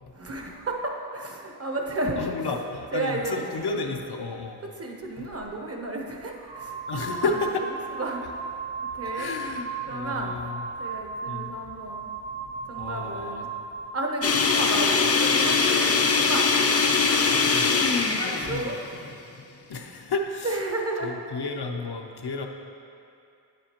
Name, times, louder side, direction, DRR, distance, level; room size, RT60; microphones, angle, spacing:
voice 1, 0.1-2.2 2.9-3.4 4.7-7.4 7.9-8.4 8.9-9.3 9.9-10.5 10.8-12.1 12.6-13.5 13.9-16.5 18.0-18.8 20.4-21.2, right 2 dB, 35° right, 1 dB, 0.8 m, -32 dB
voice 2, 2.2-4.6 5.2-5.3 6.9-7.6 9.0-10.7 11.3-11.5 12.8-13.4 17.5-17.7 19.7-20.6 21.0-22.5, left 3 dB, 70° left, 2 dB, 0.7 m, -32 dB
sound 1, 5.3-5.5 6.3-14.0, right 4 dB, 80° right, 0.9 m, -35 dB
sound 2, 14.2-19.4, left 5 dB, 40° left, 0.5 m, -22 dB
8.8 x 7.6 x 2.9 m, 2.5 s
wide cardioid pair, 110°, 41 cm